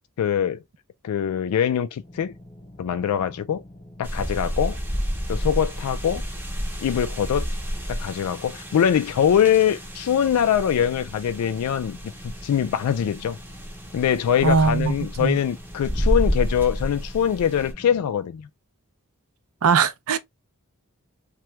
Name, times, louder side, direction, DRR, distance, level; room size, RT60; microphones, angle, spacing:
voice 1, 0.2-0.6 1.0-2.3 2.8-3.6 4.0-4.8 5.3-6.2 6.8-7.5 7.9-12.0 12.2-13.4 13.9-18.5, left 9 dB, 75° left, 0.3 m, -23 dB
sound 1, 2.0-18.0, left 1 dB, 25° left, 0.8 m, -46 dB
sound 2, 4.0-17.7, equal, 10° right, 0.7 m, -30 dB
voice 2, 14.4-15.4 19.6-20.2, right 5 dB, 70° right, 0.5 m, -21 dB
2.9 x 2.2 x 3.1 m
head